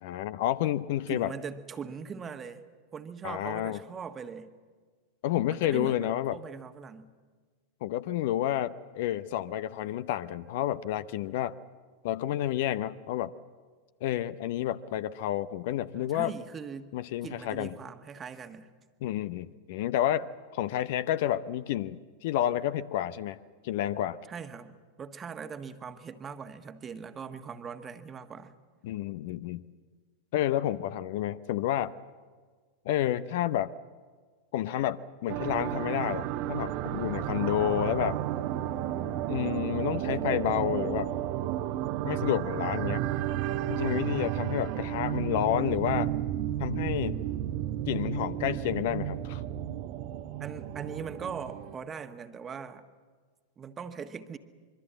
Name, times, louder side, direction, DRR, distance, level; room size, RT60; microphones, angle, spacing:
voice 1, 0.0-1.3 3.2-3.8 5.2-6.4 7.8-11.5 12.0-13.3 14.0-16.3 16.9-17.7 19.0-20.3 20.5-23.4 23.6-24.2 28.8-29.6 30.3-31.9 32.8-33.7 34.5-38.2 39.3-41.1 42.0-43.1 43.7-46.1 46.6-47.2 47.9-49.4, left 12 dB, 50° left, 16 dB, 0.7 m, -30 dB
voice 2, 1.1-2.6 2.9-4.5 5.5-7.1 15.9-16.9 17.2-18.7 24.3-28.5 45.3-45.8 50.4-52.8 53.6-54.4, right 6 dB, 20° right, 9 dB, 1.4 m, -41 dB
sound 1, 35.3-51.8, right 12 dB, 45° right, 1.1 m, -32 dB
25.0 x 23.5 x 7.6 m, 1.5 s
figure-of-eight pair, 90°, 0 cm